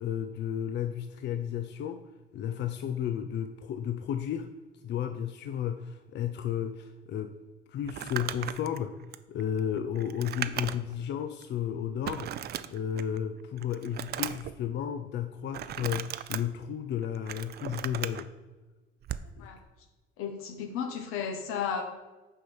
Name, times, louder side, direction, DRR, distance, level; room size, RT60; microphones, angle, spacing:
voice 1, 0.0-2.0 2.3-4.5 4.8-7.3 7.7-8.9 9.3-12.3 12.7-18.3 19.4-19.5, left 9 dB, 60° left, 8 dB, 0.5 m, -33 dB
Crumpling crinkling, 7.8-11.0 11.4-11.5 12.0-13.2 13.6-14.5 15.5-16.4 17.0-18.2 19.0-19.3, right 11 dB, 50° right, 0.4 m, -37 dB
voice 2, 20.2-21.8, left 7 dB, 80° left, 6 dB, 1.0 m, -33 dB
6.2 x 4.4 x 5.5 m, 1.2 s
cardioid pair, 85°, 21 cm